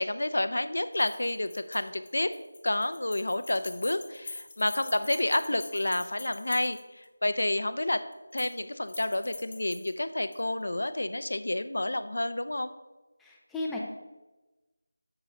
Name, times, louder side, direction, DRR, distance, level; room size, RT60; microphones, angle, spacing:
voice 1, 0.0-2.3 2.6-8.0 8.3-12.7, left 1 dB, 80° left, 11 dB, 0.7 m, -29 dB
sound 1, 0.9-7.1 8.1-8.6 8.9-10.4, left 3 dB, 30° left, 1.0 m, -45 dB
voice 2, 13.2-13.8, left 2 dB, ahead, -3 dB, 0.6 m, -35 dB
6.9 x 6.9 x 5.1 m, 1.1 s
figure-of-eight pair, 175°, 0 cm